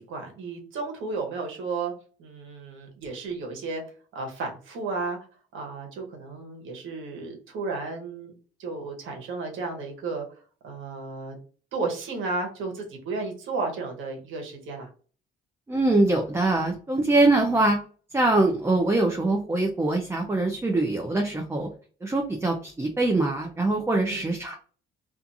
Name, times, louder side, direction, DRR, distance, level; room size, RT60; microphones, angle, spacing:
voice 1, 0.0-1.9 2.2-3.8 4.1-5.2 5.5-8.3 8.6-10.3 10.6-11.4 11.7-14.9 24.1-24.2, right 3 dB, 80° right, 2 dB, 1.0 m, -33 dB
voice 2, 15.7-17.8 18.1-21.7 22.0-24.5, right 2 dB, 15° right, 2 dB, 0.4 m, -23 dB
2.4 x 2.4 x 2.6 m, 0.40 s
cardioid pair, 90°, 20 cm